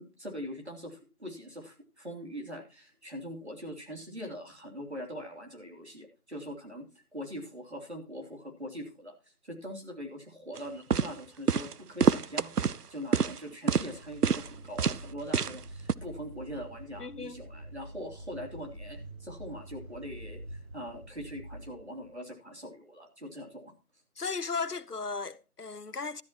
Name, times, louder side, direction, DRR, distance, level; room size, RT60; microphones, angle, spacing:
voice 1, 0.0-6.8 7.1-9.1 9.4-23.7, equal, 45° right, 3.1 m, -42 dB
sound 1, 10.6-10.7 10.9-11.1 11.5-11.7 12.0-12.8 13.1-13.4 13.7-13.9 14.2-14.5 14.8-15.0 15.3-15.6 15.9-16.0, right 6 dB, 85° right, 0.7 m, -26 dB
sound 2, 13.7-22.1, right 1 dB, 65° right, 3.4 m, -47 dB
voice 2, 17.0-17.4 24.2-26.2, left 4 dB, 85° left, 1.1 m, -36 dB
13.0 x 12.0 x 3.0 m
figure-of-eight pair, 180°, 45 cm